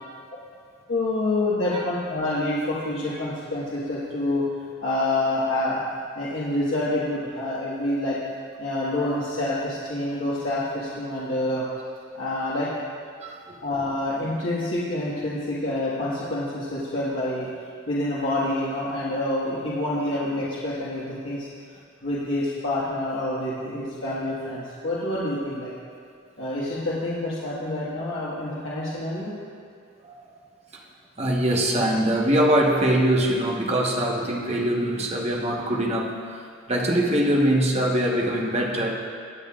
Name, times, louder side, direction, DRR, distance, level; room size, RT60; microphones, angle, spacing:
voice 1, 0.9-4.5 4.8-5.8 6.1-8.2 8.6-11.6 12.1-12.7 13.6-17.5 17.9-21.5 22.0-25.7 26.4-29.3, left 1 dB, 80° left, -9 dB, 1.7 m, -27 dB
voice 2, 13.2-13.6 30.0-30.1 31.2-36.4 36.7-39.1, right 1 dB, 35° right, -1 dB, 1.2 m, -23 dB
22.0 x 7.9 x 2.5 m, 2.2 s
head